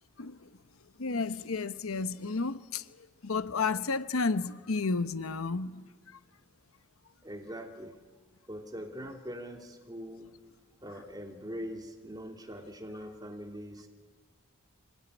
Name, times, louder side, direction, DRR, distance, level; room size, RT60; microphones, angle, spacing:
voice 1, 0.2-0.5 1.0-5.9, left 4 dB, 80° left, 0.9 m, -32 dB
voice 2, 7.2-8.0 8.5-10.3 10.8-13.9, equal, 20° right, 2.6 m, -42 dB
25.0 x 19.5 x 9.9 m
head